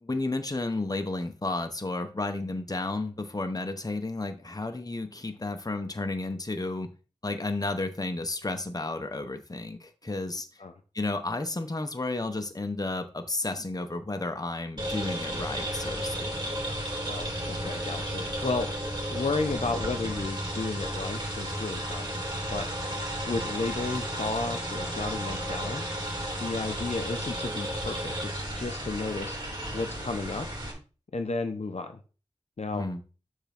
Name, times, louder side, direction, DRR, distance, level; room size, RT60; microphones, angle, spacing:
voice 1, 0.0-6.9 7.2-10.5 10.9-16.4 32.7-33.0, left 2 dB, 30° left, 7 dB, 1.0 m, -32 dB
sound 1, 14.8-30.7, equal, 35° right, 3.1 m, -33 dB
voice 2, 17.1-18.7 19.1-22.1 22.5-22.7 23.0-25.9 26.4-29.4 29.7-30.5 31.1-32.0 32.6-32.8, left 3 dB, 65° left, 7 dB, 0.8 m, -33 dB
6.8 x 3.7 x 5.9 m, 0.35 s
wide cardioid pair, 50°, 12 cm